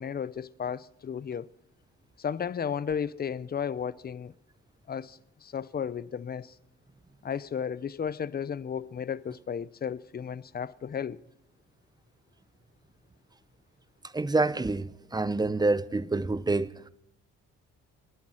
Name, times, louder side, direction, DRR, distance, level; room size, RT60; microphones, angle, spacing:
voice 1, 0.0-1.5 2.2-4.3 4.9-6.6 7.2-11.2, left 7 dB, 30° left, 0.6 m, -34 dB
voice 2, 14.1-16.7, right 3 dB, 15° right, 0.7 m, -27 dB
27.5 x 11.0 x 4.4 m
cardioid pair, 90°, 30 cm